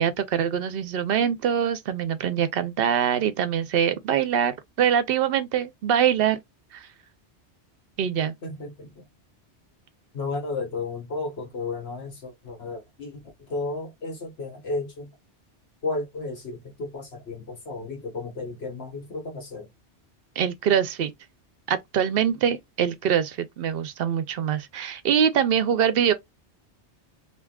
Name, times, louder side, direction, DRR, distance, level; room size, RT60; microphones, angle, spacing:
voice 1, 0.0-6.4 6.7-6.9 8.0-8.3 20.4-21.1 21.7-26.1, right 8 dB, 60° right, 0.7 m, -24 dB
voice 2, 8.4-9.1 10.1-15.1 15.8-19.7, left 3 dB, 60° left, 1.5 m, -33 dB
3.4 x 2.6 x 2.2 m
omnidirectional pair, 1.2 m